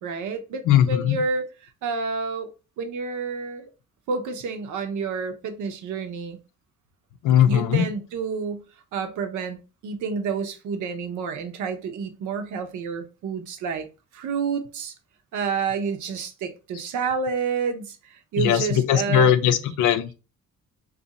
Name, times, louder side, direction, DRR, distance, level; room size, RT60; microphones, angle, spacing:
voice 1, 0.0-1.5 1.8-2.5 2.8-3.7 4.1-6.4 7.5-8.6 8.9-9.6 9.8-13.9 14.1-14.9 15.3-19.3, right 5 dB, 80° right, 0.8 m, -29 dB
voice 2, 0.7-1.2 7.2-7.8 18.4-20.1, left 10 dB, 90° left, 0.5 m, -19 dB
2.7 x 2.5 x 4.0 m
cardioid pair, 90°, 30 cm